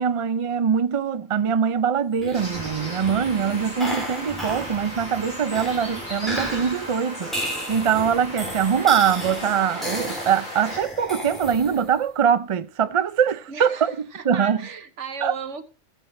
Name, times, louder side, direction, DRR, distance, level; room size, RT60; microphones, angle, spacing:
voice 1, 0.0-7.3 7.7-14.6 15.2-15.3, right 7 dB, 50° right, 0.4 m, -23 dB
sound 1, 2.1-12.0, equal, ahead, 3.9 m, -34 dB
sound 2, 2.3-10.8, equal, 30° left, 5.0 m, -36 dB
voice 2, 3.5-4.3 4.6-4.7 13.5-15.7, right 5 dB, 75° right, 1.3 m, -36 dB
18.5 x 7.3 x 3.2 m
omnidirectional pair, 1.2 m